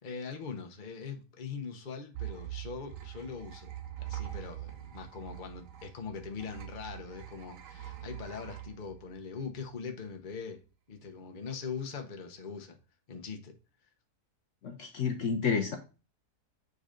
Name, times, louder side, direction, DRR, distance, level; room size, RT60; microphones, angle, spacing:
voice 1, 0.0-10.6 10.9-12.8 13.1-13.6, left 5 dB, 35° left, 1.0 m, -41 dB
sound 1, 2.1-9.7, right 13 dB, 60° right, 1.0 m, -43 dB
voice 2, 14.6-15.8, left 6 dB, 60° left, 1.0 m, -30 dB
8.1 x 3.9 x 5.1 m
omnidirectional pair, 1.7 m